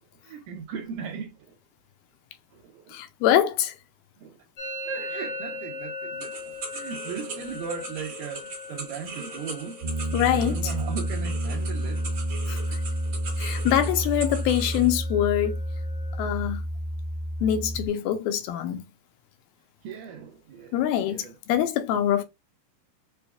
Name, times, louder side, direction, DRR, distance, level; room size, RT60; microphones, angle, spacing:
voice 1, 0.2-1.6 2.5-3.0 4.2-4.4 4.8-9.9 10.3-12.1 19.8-21.4, right 6 dB, 80° right, 2.1 m, -38 dB
voice 2, 2.9-3.7 10.1-10.7 12.5-12.8 13.4-15.6 16.2-16.6 17.4-18.9 20.7-22.2, left 11 dB, 80° left, 2.4 m, -24 dB
Musical instrument, 4.6-12.2 12.5-13.0 13.3-13.9 14.2-16.2, left 2 dB, 65° left, 1.1 m, -40 dB
sound 1, 6.2-14.9, right 3 dB, 45° right, 1.3 m, -40 dB
Piano, 9.8-17.9, equal, 60° right, 2.0 m, -30 dB
6.8 x 2.3 x 2.2 m
omnidirectional pair, 4.3 m